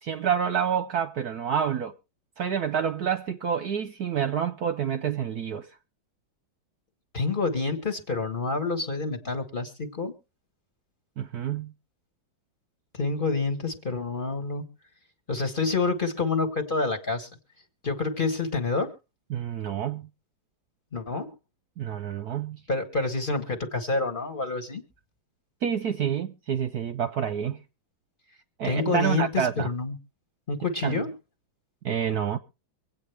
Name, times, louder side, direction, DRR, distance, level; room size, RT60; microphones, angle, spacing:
voice 1, 0.0-1.9 2.4-5.7 11.2-11.7 19.3-20.1 21.8-22.6 25.6-27.6 28.6-29.7 30.8-31.0 31.8-32.4, right 8 dB, 60° right, 1.1 m, -28 dB
voice 2, 7.1-10.1 12.9-14.6 15.3-17.3 17.8-18.9 20.9-21.3 22.7-24.8 28.6-30.0 30.5-31.1, left 3 dB, 30° left, 1.5 m, -28 dB
24.5 x 8.6 x 3.3 m
omnidirectional pair, 2.2 m